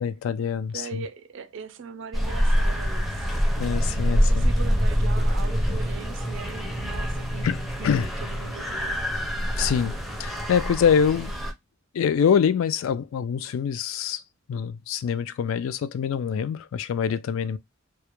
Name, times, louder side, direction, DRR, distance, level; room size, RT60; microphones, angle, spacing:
voice 1, 0.0-1.0 3.6-4.4 7.4-7.6 7.8-8.1 9.6-11.3 11.9-14.2 14.5-17.6, left 7 dB, 75° left, 0.3 m, -25 dB
voice 2, 0.5-3.3 3.7-7.5 7.8-9.1 9.5-9.6, right 5 dB, 65° right, 0.4 m, -40 dB
sound 1, 2.1-11.5, equal, ahead, 0.5 m, -25 dB
2.3 x 2.0 x 2.9 m
head